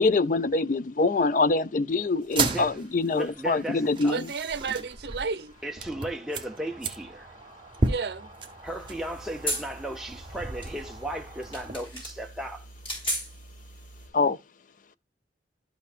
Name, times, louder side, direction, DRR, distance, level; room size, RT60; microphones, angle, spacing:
voice 1, 0.0-4.3 14.1-14.4, left 3 dB, 50° left, 0.5 m, -24 dB
sound 1, 2.2-11.8, right 3 dB, 30° right, 1.0 m, -35 dB
voice 2, 2.5-2.8 3.1-4.2 5.6-7.3 8.6-12.7, right 1 dB, ahead, 0.6 m, -36 dB
voice 3, 4.1-5.5 7.9-8.3, right 5 dB, 70° right, 0.8 m, -32 dB
sound 2, 8.6-14.1, right 1 dB, 30° left, 4.7 m, -37 dB
12.5 x 5.6 x 2.5 m
head